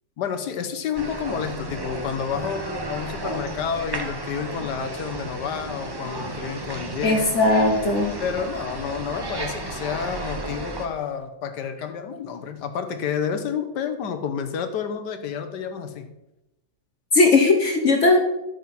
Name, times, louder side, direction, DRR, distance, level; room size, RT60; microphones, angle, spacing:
voice 1, 0.2-7.3 8.2-16.1, left 7 dB, 80° left, 8 dB, 1.5 m, -30 dB
sound 1, 0.9-10.9, right 2 dB, 25° right, 0.5 m, -33 dB
voice 2, 7.0-8.2 17.1-18.2, left 2 dB, 50° left, 3 dB, 1.1 m, -18 dB
11.0 x 6.8 x 4.2 m, 0.94 s
omnidirectional pair, 1.8 m